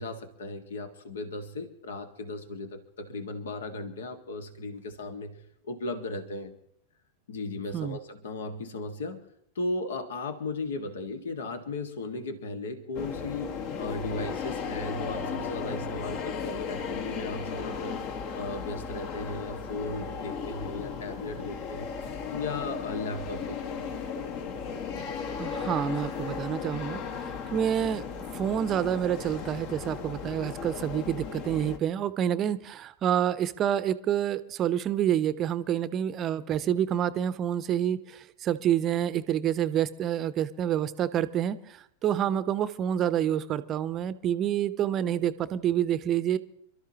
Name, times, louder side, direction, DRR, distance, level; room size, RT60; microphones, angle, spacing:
voice 1, 0.0-5.4 5.6-6.5 7.3-9.2 9.6-13.5 13.8-18.0 18.3-21.9 22.3-23.9, left 2 dB, 65° left, 8 dB, 1.8 m, -36 dB
sound 1, 12.9-31.8, left 6 dB, 45° left, 1.6 m, -36 dB
voice 2, 25.4-28.0 28.3-46.4, right 10 dB, 30° right, 16 dB, 0.8 m, -28 dB
28.0 x 13.0 x 3.0 m, 0.73 s
figure-of-eight pair, 90°, 0 cm